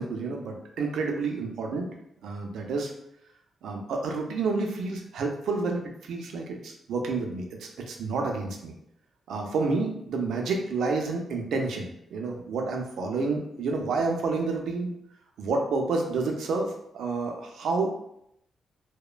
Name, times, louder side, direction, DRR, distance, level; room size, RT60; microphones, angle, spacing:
voice 1, 0.0-1.9 2.2-2.9 3.6-8.7 9.3-14.9 15.4-17.9, right 3 dB, 85° right, 2 dB, 0.4 m, -29 dB
2.9 x 2.0 x 2.4 m, 0.76 s
cardioid pair, 100°, 0 cm